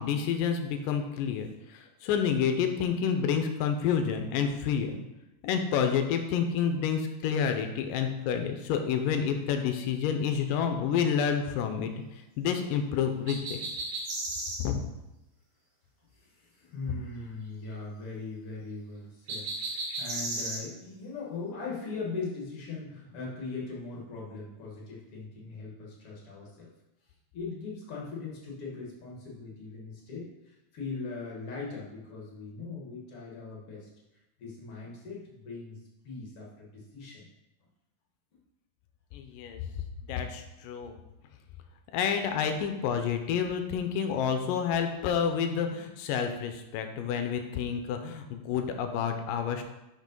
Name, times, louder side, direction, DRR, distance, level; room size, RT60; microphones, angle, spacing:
voice 1, 0.0-5.0 5.4-13.6 14.6-14.8 39.1-39.6 40.1-41.0 41.9-49.6, left 7 dB, 80° left, 6 dB, 2.0 m, -29 dB
sound 1, 13.3-14.6 19.3-20.6, right 2 dB, 60° right, 3.0 m, -34 dB
voice 2, 16.1-26.7 27.0-33.9 34.4-35.8 36.0-37.3, left 4 dB, 55° left, -4 dB, 1.7 m, -40 dB
6.2 x 5.2 x 5.2 m, 0.94 s
omnidirectional pair, 4.4 m